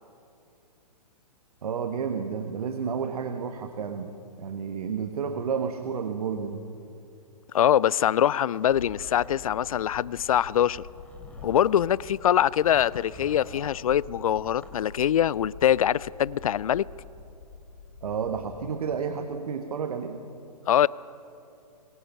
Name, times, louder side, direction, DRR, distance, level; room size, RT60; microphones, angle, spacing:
voice 1, 1.6-4.1 4.4-6.6 18.0-20.2, right 6 dB, 60° right, 1.3 m, -31 dB
voice 2, 7.5-10.8 11.4-16.8 20.7-20.9, left 10 dB, 55° left, 0.4 m, -23 dB
Zipper (clothing), 8.4-9.8 10.7-11.9 12.7-13.8 14.4-14.8, left 1 dB, 5° left, 2.9 m, -49 dB
sound 1, 8.6-18.7, left 4 dB, 75° left, 2.6 m, -46 dB
26.0 x 22.5 x 5.6 m
figure-of-eight pair, 120°, 21 cm